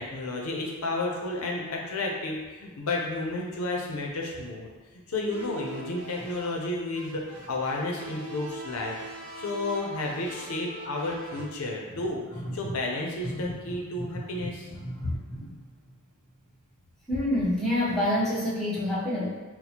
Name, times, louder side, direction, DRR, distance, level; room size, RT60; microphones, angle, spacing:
voice 1, 0.0-4.7 5.1-7.2 7.5-9.0 9.4-14.7, left 2 dB, 75° left, -1 dB, 0.5 m, -32 dB
sound 1, 5.3-11.5, right 2 dB, 80° right, 0.5 m, -43 dB
voice 2, 14.8-15.5 17.1-19.3, left 1 dB, 5° left, -9 dB, 0.6 m, -28 dB
4.2 x 2.0 x 2.8 m, 1.2 s
head